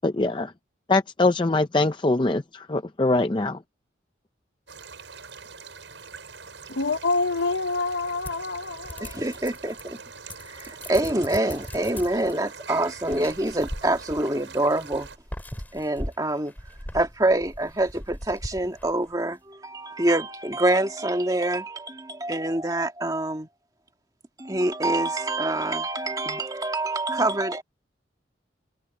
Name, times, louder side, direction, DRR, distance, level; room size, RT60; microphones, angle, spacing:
voice 1, 0.0-0.5 0.9-3.6, left 2 dB, 25° left, 0.5 m, -23 dB
sound 1, 4.7-15.2, right 5 dB, 80° right, 7.0 m, -43 dB
voice 2, 6.7-9.1, left 3 dB, 75° left, 1.0 m, -27 dB
sound 2, 8.3-10.0 10.3-12.3 13.0-14.4 14.9-19.2, equal, 10° left, 2.9 m, -39 dB
voice 3, 9.0-10.0 10.5-15.1 15.7-16.5 16.9-23.5 24.4-27.6, right 1 dB, 20° right, 2.0 m, -26 dB
open air
head